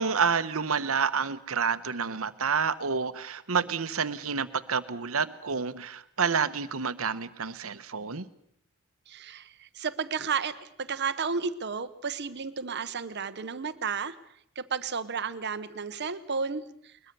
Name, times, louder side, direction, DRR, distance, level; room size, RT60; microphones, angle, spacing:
voice 1, 0.0-8.3, right 6 dB, 75° right, 13 dB, 1.1 m, -29 dB
voice 2, 9.1-14.2 14.5-17.1, right 5 dB, 50° right, 12 dB, 1.0 m, -33 dB
21.5 x 21.5 x 6.8 m, 0.67 s
head